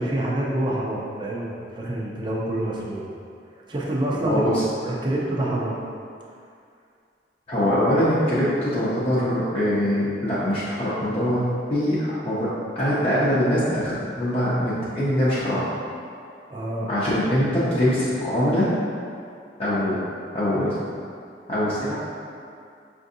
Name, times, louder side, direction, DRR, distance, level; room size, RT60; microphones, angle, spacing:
voice 1, 0.0-3.0 3.7-4.4 4.8-5.8 16.5-16.9, right 1 dB, 25° right, -4 dB, 0.5 m, -27 dB
voice 2, 4.2-4.6 7.5-12.5 12.8-15.6 16.9-18.7 19.6-20.0 20.3-20.7 21.5-22.0, equal, 30° left, -10 dB, 0.6 m, -23 dB
5.5 x 2.6 x 2.6 m, 2.4 s
head